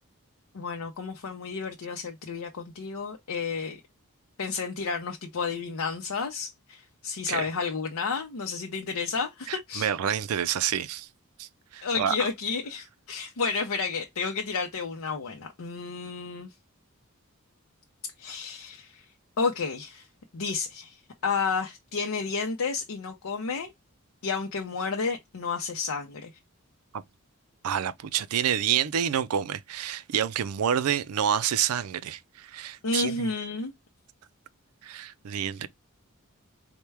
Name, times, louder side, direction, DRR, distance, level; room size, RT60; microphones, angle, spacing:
voice 1, 0.5-3.8 4.4-9.9 11.8-16.5 18.2-19.0 19.4-20.1 20.3-21.0 21.2-23.7 24.2-26.3 32.8-33.7, left 4 dB, 90° left, 0.6 m, -31 dB
voice 2, 9.5-11.1 11.4-11.5 11.7-12.1 27.6-33.3 34.8-35.7, right 9 dB, 80° right, 0.4 m, -28 dB
4.4 x 2.2 x 3.3 m
head